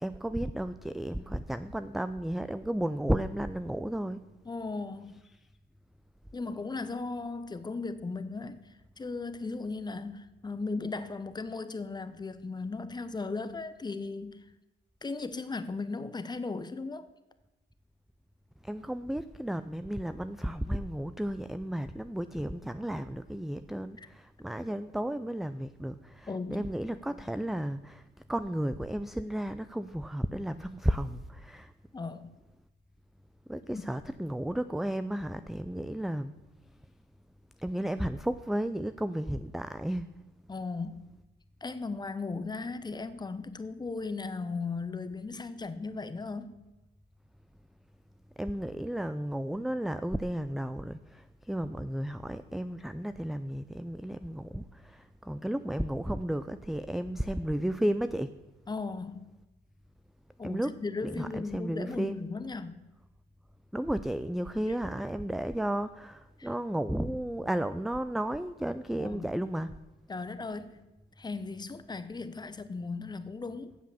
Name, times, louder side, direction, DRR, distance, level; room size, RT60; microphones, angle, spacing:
voice 1, 0.0-4.2 5.1-5.2 18.6-31.7 33.5-36.3 37.6-40.1 48.4-58.4 60.4-62.2 63.7-69.7, right 1 dB, ahead, 12 dB, 0.3 m, -33 dB
voice 2, 4.4-5.2 6.3-14.4 15.0-17.1 24.0-24.1 26.3-26.7 31.9-32.3 33.7-33.8 40.5-41.1 41.6-46.6 58.7-59.3 60.4-62.8 66.4-66.5 69.0-69.3 70.1-70.9 71.2-73.8, left 3 dB, 20° left, 12 dB, 0.8 m, -37 dB
8.2 x 7.6 x 7.0 m, 1.0 s
cardioid pair, 90°, 20 cm